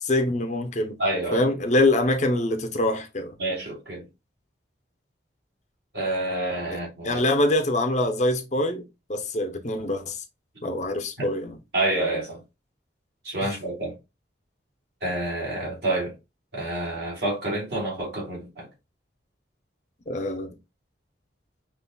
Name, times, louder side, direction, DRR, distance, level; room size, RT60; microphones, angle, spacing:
voice 1, 0.0-1.0 1.3-3.3 6.7-8.8 9.1-10.2 10.6-11.6 13.4-13.5 20.1-20.5, left 1 dB, 40° left, 0.7 m, -24 dB
voice 2, 1.0-1.4 3.4-4.0 5.9-7.2 11.2-11.3 11.7-12.4 13.2-13.9 15.0-16.1 16.5-18.7, right 1 dB, 60° right, 2.7 m, -28 dB
5.7 x 3.1 x 2.2 m
head